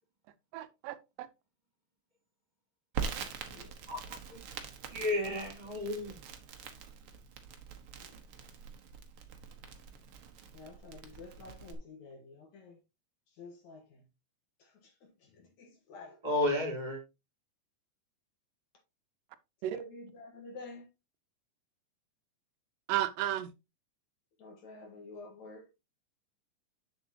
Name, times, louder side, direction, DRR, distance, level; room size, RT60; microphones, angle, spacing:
voice 1, 0.5-1.3 19.6-19.8 22.9-23.5, right 13 dB, 80° right, 2.2 m, -33 dB
Crackle, 2.9-11.7, right 6 dB, 65° right, 1.5 m, -44 dB
voice 2, 3.2-3.8 8.0-8.2 10.5-12.8 13.3-14.1 14.6-16.2 19.6-20.9 24.4-25.7, left 2 dB, 65° left, 2.4 m, -50 dB
voice 3, 3.9-4.6 4.9-6.2 16.2-17.0, left 1 dB, 10° right, 3.4 m, -33 dB
7.9 x 7.1 x 2.8 m
omnidirectional pair, 3.9 m